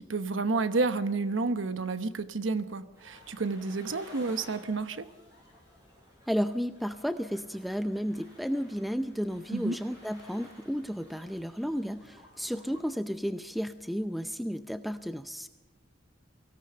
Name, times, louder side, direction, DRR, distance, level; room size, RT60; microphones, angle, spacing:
voice 1, 0.0-5.1 9.5-9.8, right 3 dB, 90° right, 11 dB, 1.0 m, -30 dB
sound 1, 2.9-12.8, equal, 20° right, 6.4 m, -55 dB
voice 2, 6.3-15.5, equal, ahead, 9 dB, 0.6 m, -33 dB
23.5 x 17.0 x 6.7 m, 1.1 s
head